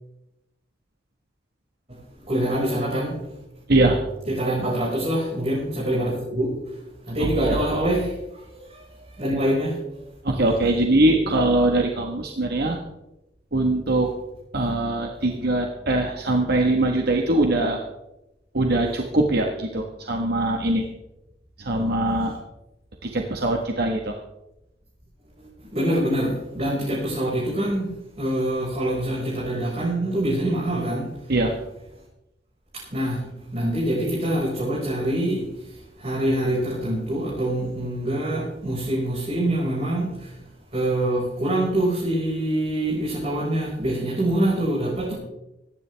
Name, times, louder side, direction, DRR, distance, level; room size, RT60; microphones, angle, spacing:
voice 1, 2.3-3.2 4.3-6.6 7.1-8.4 8.7-8.8 9.2-9.8 22.1-22.2 25.7-27.9 28.2-31.1 32.7-35.4 36.0-40.3 40.7-45.1, right 1 dB, 35° right, -7 dB, 5.4 m, -25 dB
voice 2, 7.2-7.6 10.2-12.8 13.5-14.1 14.5-17.8 18.5-20.8 21.6-22.3 23.0-24.1 31.3-31.5, right 2 dB, 60° right, 2 dB, 1.4 m, -22 dB
25.0 x 10.5 x 3.4 m, 0.92 s
head